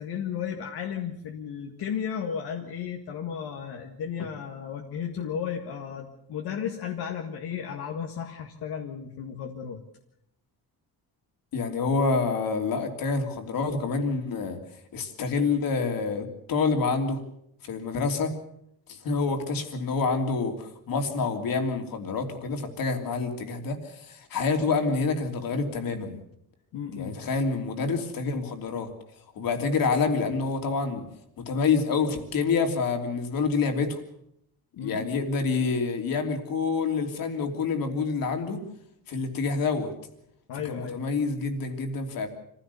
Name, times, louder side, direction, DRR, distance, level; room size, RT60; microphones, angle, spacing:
voice 1, 0.0-9.8 26.7-27.2 34.8-35.1 40.5-41.0, left 8 dB, 85° left, 1 dB, 2.0 m, -34 dB
voice 2, 11.5-14.6 14.9-17.2 17.6-18.3 18.9-26.2 26.9-28.9 29.3-31.1 31.4-34.0 34.8-38.6 39.1-39.9 40.7-42.3, left 4 dB, 65° left, 5 dB, 3.1 m, -27 dB
25.5 x 16.0 x 7.0 m, 0.74 s
cardioid pair, 130°, 37 cm